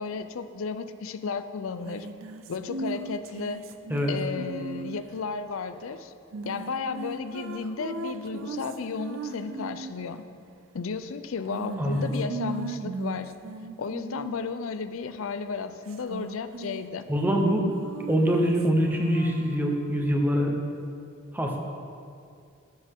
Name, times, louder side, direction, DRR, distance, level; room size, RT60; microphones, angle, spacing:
voice 1, 0.0-2.1 2.5-3.6 4.1-6.1 6.5-10.2 10.7-13.4 13.8-17.1, left 5 dB, 80° left, 11 dB, 0.5 m, -33 dB
sound 1, 1.8-5.2 6.3-10.1 11.5-14.6 15.9-16.9 17.2-20.1, right 3 dB, 80° right, 0.5 m, -38 dB
voice 2, 11.8-12.2 17.1-17.7 18.1-20.6 21.3-21.6, equal, 10° right, 1 dB, 0.8 m, -24 dB
13.5 x 6.5 x 3.6 m, 2.4 s
head